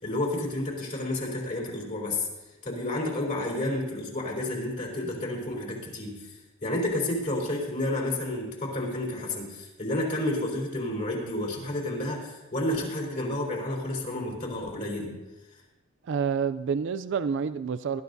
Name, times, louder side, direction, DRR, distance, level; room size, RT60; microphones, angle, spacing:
voice 1, 0.0-2.3 2.6-15.2, left 1 dB, 40° left, -2 dB, 3.7 m, -30 dB
voice 2, 16.1-18.0, right 6 dB, 60° right, 13 dB, 0.4 m, -28 dB
19.5 x 12.5 x 2.7 m, 1.1 s
head